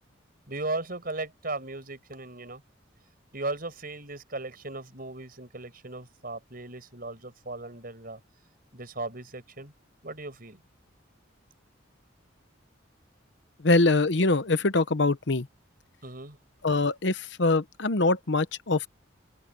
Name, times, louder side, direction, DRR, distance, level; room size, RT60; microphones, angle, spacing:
voice 1, 0.5-2.6 3.3-8.2 8.7-9.7 10.0-10.6 16.0-16.4, right 2 dB, 45° right, 5.6 m, -37 dB
voice 2, 13.6-15.5 16.6-18.9, left 3 dB, 60° left, 0.9 m, -23 dB
open air
head